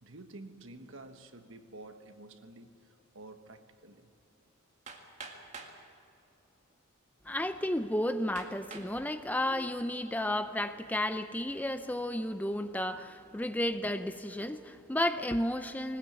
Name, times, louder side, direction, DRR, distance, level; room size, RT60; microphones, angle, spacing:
voice 1, 0.0-4.1, right 2 dB, 65° right, 8 dB, 1.3 m, -50 dB
Hammer, 4.9-5.8 6.7-6.8 7.4-7.5 8.4-9.0 9.5-10.0, right 4 dB, 35° right, 2.0 m, -47 dB
voice 2, 7.2-16.0, left 1 dB, 10° left, 10 dB, 0.5 m, -32 dB
21.0 x 19.5 x 8.1 m, 2.6 s
head